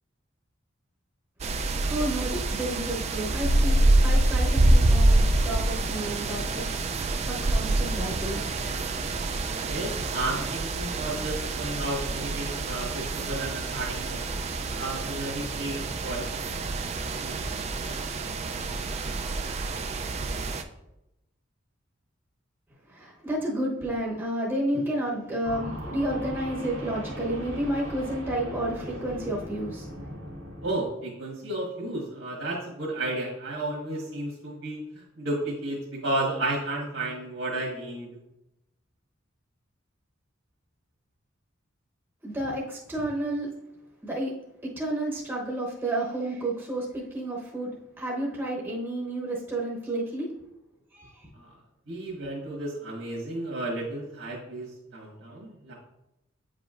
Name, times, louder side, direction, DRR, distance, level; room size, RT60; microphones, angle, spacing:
sound 1, 1.4-20.6, right 2 dB, 35° right, 0.4 m, -26 dB
voice 1, 1.6-7.0 7.3-8.7 22.9-30.2 42.2-43.5 44.0-44.3 44.6-47.7 48.0-50.3 50.9-51.3, right 1 dB, 10° right, -5 dB, 0.9 m, -31 dB
voice 2, 9.6-14.3 14.7-16.3 17.2-17.4 30.6-38.1 51.3-51.5 51.9-55.7, right 1 dB, 70° right, -5 dB, 1.4 m, -33 dB
sound 2, 25.4-30.7, equal, 85° right, 1.8 m, -38 dB
8.3 x 5.0 x 2.5 m, 0.88 s
head